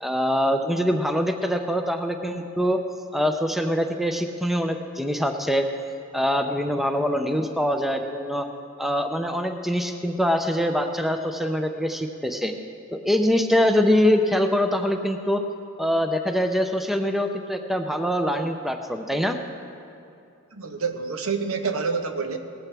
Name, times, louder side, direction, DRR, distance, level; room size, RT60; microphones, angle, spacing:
voice 1, 0.0-2.8 3.1-5.7 6.1-8.5 8.8-12.5 12.9-15.4 15.8-19.4, equal, ahead, 6 dB, 0.5 m, -24 dB
voice 2, 20.5-22.4, right 5 dB, 70° right, 6 dB, 1.0 m, -27 dB
19.0 x 14.5 x 3.4 m, 2.6 s
head